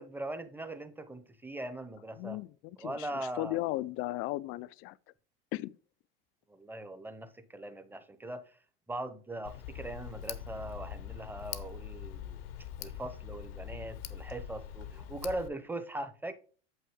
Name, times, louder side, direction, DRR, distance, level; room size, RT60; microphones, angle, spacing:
voice 1, 0.0-2.4 2.8-3.6 6.5-8.4 8.9-12.4 12.8-16.3, right 1 dB, 5° right, 0.8 m, -40 dB
voice 2, 2.2-5.0 5.5-5.8, left 17 dB, 45° left, 0.4 m, -36 dB
Tick, 9.4-15.5, left 10 dB, 70° left, 0.8 m, -43 dB
7.5 x 5.6 x 3.7 m
hypercardioid pair, 90°, 30 cm